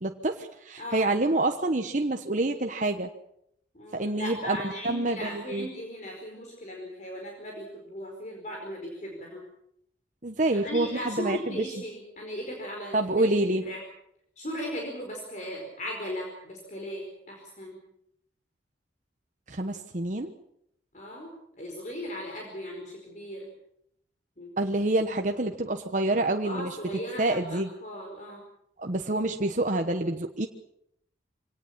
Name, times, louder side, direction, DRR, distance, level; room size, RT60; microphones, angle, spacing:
voice 1, 0.0-3.1 3.9-5.7 10.2-11.7 12.9-13.6 19.5-20.3 24.6-26.8 27.2-27.7 28.8-30.5, right 2 dB, 45° right, 4 dB, 1.1 m, -27 dB
voice 2, 0.8-1.1 3.7-9.4 10.5-13.3 13.6-13.8 14.4-17.8 20.9-23.5 24.4-24.5 26.4-28.4, equal, 40° left, 0 dB, 4.8 m, -37 dB
25.0 x 18.5 x 7.4 m, 0.75 s
head